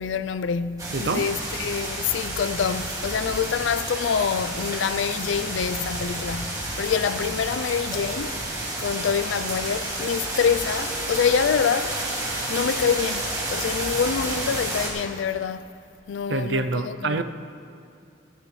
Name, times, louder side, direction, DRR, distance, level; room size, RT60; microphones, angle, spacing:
voice 1, 0.0-8.4 8.8-12.0 12.5-15.7 16.1-17.2, left 6 dB, 80° left, 0.4 m, -26 dB
sound 1, 0.8-14.9, right 2 dB, 20° right, 2.2 m, -30 dB
voice 2, 0.9-1.3 16.3-17.2, right 3 dB, 60° right, 0.5 m, -26 dB
16.0 x 14.5 x 3.2 m
head